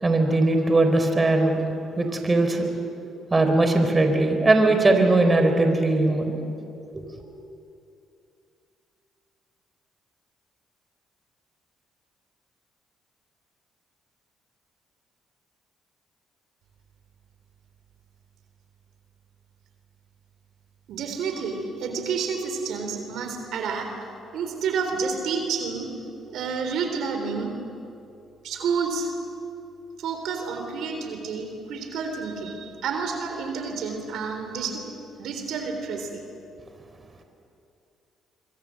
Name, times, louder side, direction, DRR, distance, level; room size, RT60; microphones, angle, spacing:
voice 1, 0.0-1.6 2.0-2.7 3.3-6.4, right 2 dB, 25° right, 5 dB, 4.3 m, -20 dB
voice 2, 20.9-23.9 24.3-25.9 26.3-27.5 28.4-29.1 30.0-34.9 35.2-36.2, right 5 dB, 75° right, 5 dB, 3.8 m, -29 dB
26.0 x 24.0 x 7.8 m, 2.6 s
supercardioid pair, 70°, 0 cm